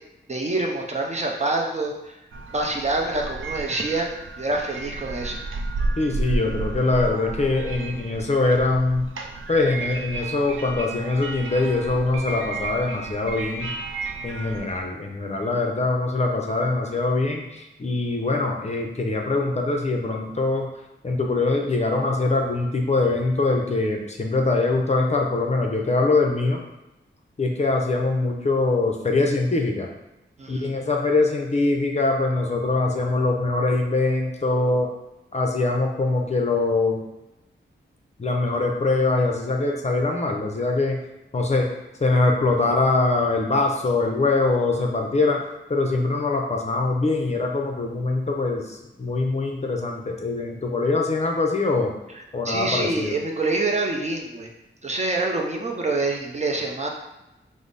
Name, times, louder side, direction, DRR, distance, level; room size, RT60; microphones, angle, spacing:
voice 1, 0.3-2.2 2.5-4.1 4.4-5.4 30.4-30.7 52.1-54.5 54.8-56.9, right 2 dB, 35° right, 1 dB, 0.6 m, -26 dB
sound 1, 2.3-14.8, right 3 dB, 85° right, 0.5 m, -32 dB
voice 2, 6.0-9.1 9.5-13.7 14.2-20.7 21.0-26.6 27.4-29.9 30.5-34.9 35.3-37.0 38.2-41.0 41.3-41.7 42.0-45.4 45.7-48.6 49.0-51.9 52.3-53.2, left 3 dB, 35° left, 1 dB, 0.6 m, -23 dB
5.1 x 2.0 x 3.9 m, 0.96 s
wide cardioid pair, 120°, 20 cm